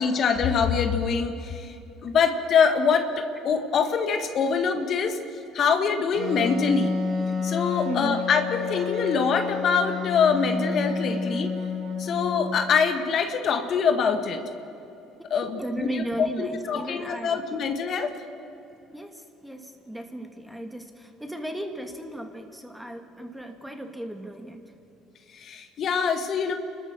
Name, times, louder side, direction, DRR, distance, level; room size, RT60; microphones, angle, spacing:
voice 1, 0.0-1.8 2.0-5.2 5.5-7.0 7.4-11.5 12.0-14.4 15.3-18.1 25.3-26.5, left 6 dB, 55° left, 6 dB, 1.8 m, -24 dB
Wind instrument woodwind instrument, 6.1-12.6, left 4 dB, 75° right, 5.6 m, -29 dB
voice 2, 7.8-8.3 15.6-17.4 18.9-24.6, right 1 dB, 5° right, 5 dB, 2.6 m, -35 dB
29.5 x 13.5 x 7.5 m, 2.8 s
hypercardioid pair, 70°, 0 cm